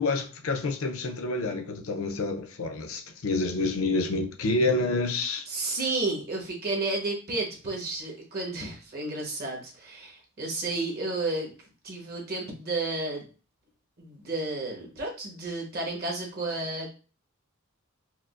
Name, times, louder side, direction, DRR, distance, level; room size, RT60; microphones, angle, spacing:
voice 1, 0.0-5.5, left 2 dB, 75° left, 0.6 m, -28 dB
voice 2, 5.5-11.5 11.8-13.2 14.0-16.9, right 2 dB, 45° right, 1.1 m, -32 dB
4.7 x 2.0 x 2.4 m
head